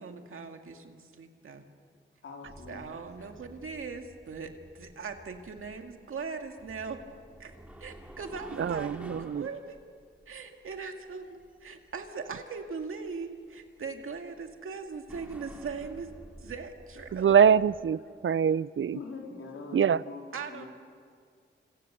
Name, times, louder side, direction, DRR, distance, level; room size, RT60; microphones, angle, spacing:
voice 1, 0.0-1.6 2.7-7.0 7.4-9.8 10.3-16.1 16.4-17.3 20.3-20.7, right 5 dB, 85° right, 5 dB, 2.1 m, -40 dB
voice 2, 2.2-3.4 9.0-9.4 18.9-20.7, left 4 dB, 90° left, 0 dB, 4.0 m, -44 dB
sound 1, 2.4-17.9, right 1 dB, 5° right, 2.5 m, -52 dB
voice 3, 8.6-9.5 17.1-19.0 19.7-20.0, right 7 dB, 70° right, 18 dB, 0.6 m, -24 dB
26.5 x 26.5 x 6.8 m, 2.1 s
cardioid pair, 55°, 21 cm